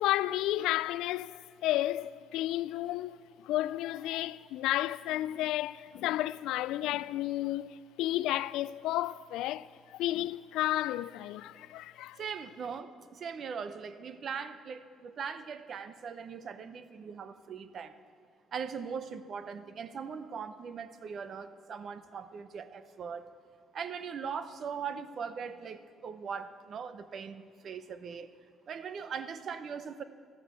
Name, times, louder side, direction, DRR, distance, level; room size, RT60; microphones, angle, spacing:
voice 1, 0.0-3.2 3.4-12.2, left 14 dB, 90° left, 0.3 m, -32 dB
voice 2, 12.2-17.9 18.5-23.2 23.7-28.3 28.7-30.0, right 6 dB, 40° right, 0.6 m, -40 dB
13.0 x 12.0 x 8.2 m
cardioid pair, 170°, 0 cm